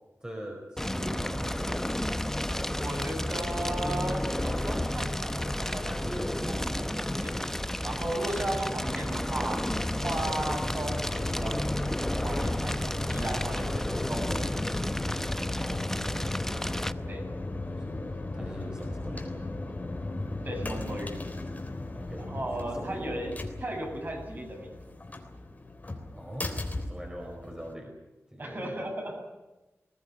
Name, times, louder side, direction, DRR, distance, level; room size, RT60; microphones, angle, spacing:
voice 1, 0.2-1.8 13.6-14.6 15.5-16.3 17.7-19.4 21.9-22.3 22.6-23.2 26.2-26.5 26.9-27.9 28.3-28.8, right 1 dB, 15° right, 1 dB, 4.7 m, -42 dB
Fire, 0.8-16.9, left 1 dB, 10° left, 0.7 m, -31 dB
voice 2, 2.8-7.3 7.8-9.6 10.0-11.7 12.0-13.8 14.1-14.4 17.1-17.2 20.4-21.2 22.2-25.0 28.4-29.2, right 1 dB, 45° right, 1 dB, 7.2 m, -36 dB
sound 1, 9.7-27.7, left 2 dB, 35° left, 3.6 m, -37 dB
20.5 x 18.5 x 9.9 m, 1.1 s
wide cardioid pair, 110°, 5 cm